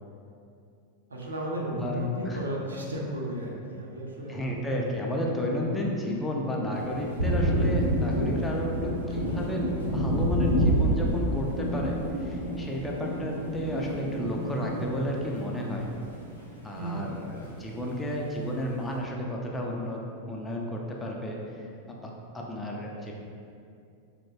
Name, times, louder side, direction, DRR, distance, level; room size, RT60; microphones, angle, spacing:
voice 1, 1.1-4.7 16.7-17.2, right 1 dB, 75° right, -2 dB, 0.4 m, -34 dB
voice 2, 1.7-2.4 4.3-9.6 9.9-15.9 16.6-23.1, equal, 10° left, -1 dB, 0.3 m, -32 dB
Thunder, 6.7-16.5 16.8-17.9, equal, 90° left, 0.5 m, -28 dB
2.9 x 2.1 x 2.7 m, 2.5 s
figure-of-eight pair, 90°, 0 cm